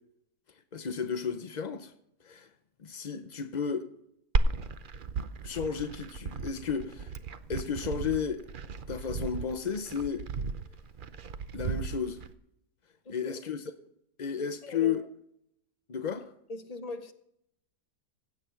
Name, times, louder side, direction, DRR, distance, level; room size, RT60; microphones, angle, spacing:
voice 1, 0.7-1.9 2.2-2.5 2.8-3.9 5.4-7.1 7.5-8.4 8.9-10.3 11.5-12.2 13.1-13.7 14.2-15.0 15.9-16.2, left 7 dB, 65° left, 0.4 m, -33 dB
Glass, 4.3-12.3, right 4 dB, 70° right, 0.4 m, -34 dB
voice 2, 13.0-13.4 14.3-15.0 16.5-17.1, left 1 dB, 30° left, 0.8 m, -41 dB
16.0 x 8.4 x 5.7 m
omnidirectional pair, 1.8 m